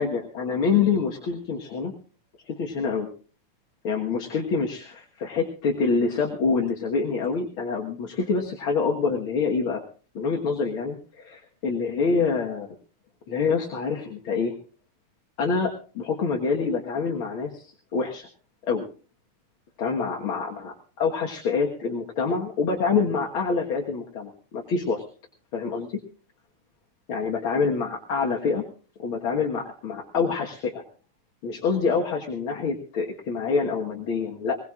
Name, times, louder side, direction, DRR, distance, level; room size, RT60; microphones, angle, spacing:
voice 1, 0.0-1.9 2.5-3.1 3.8-9.8 10.2-12.7 13.3-14.5 15.4-18.3 18.7-18.8 19.8-25.1 25.5-26.0 27.1-28.6 29.0-30.8 31.4-34.6, left 5 dB, 50° left, 0 dB, 2.0 m, -26 dB
21.0 x 20.0 x 2.5 m, 0.39 s
omnidirectional pair, 3.5 m